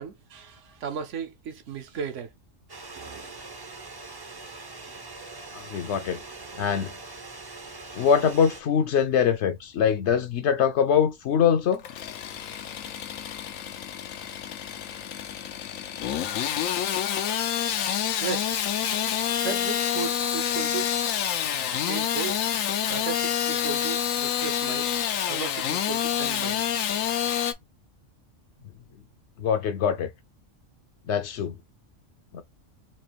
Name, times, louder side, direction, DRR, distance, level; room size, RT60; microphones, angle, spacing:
voice 1, 0.0-2.3 17.7-18.9 19.3-20.9 21.8-22.4 22.9-24.9 25.3-26.7, right 6 dB, 70° right, 1.1 m, -35 dB
sound 1, 2.7-8.6, right 3 dB, 30° right, 0.5 m, -42 dB
voice 2, 5.5-6.2 6.6-6.9 8.0-11.8 29.4-30.1 31.1-31.5 32.3-32.4, left 7 dB, 65° left, 0.8 m, -23 dB
Engine starting / Sawing, 11.7-27.5, left 9 dB, 90° left, 1.1 m, -28 dB
4.3 x 2.4 x 3.0 m
omnidirectional pair, 1.3 m